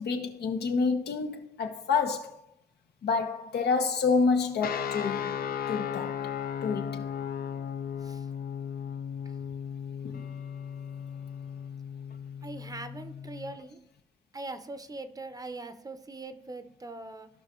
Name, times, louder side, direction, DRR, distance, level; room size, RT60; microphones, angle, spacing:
voice 1, 0.0-2.4 3.0-5.3 5.7-6.1 6.6-7.1 10.0-10.2, left 4 dB, 85° left, 1.2 m, -28 dB
sound 1, 4.6-13.6, left 8 dB, 65° left, 0.5 m, -36 dB
voice 2, 12.4-13.8 14.3-17.3, right 2 dB, 20° right, 0.7 m, -41 dB
15.5 x 5.6 x 3.0 m
wide cardioid pair, 130°, 17 cm